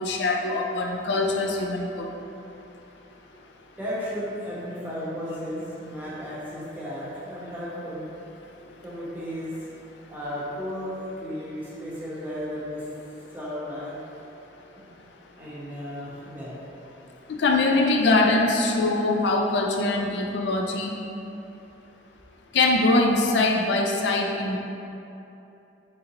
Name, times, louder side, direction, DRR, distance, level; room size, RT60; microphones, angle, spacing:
voice 1, 0.0-2.1 17.3-20.9 22.5-24.6, left 2 dB, 70° left, 1 dB, 0.4 m, -23 dB
voice 2, 3.8-8.1 8.6-9.6 10.1-12.9 13.3-14.0 14.8-14.9 15.4-16.6 17.1-17.2, equal, 10° right, -9 dB, 0.9 m, -34 dB
4.3 x 3.8 x 2.8 m, 2.8 s
head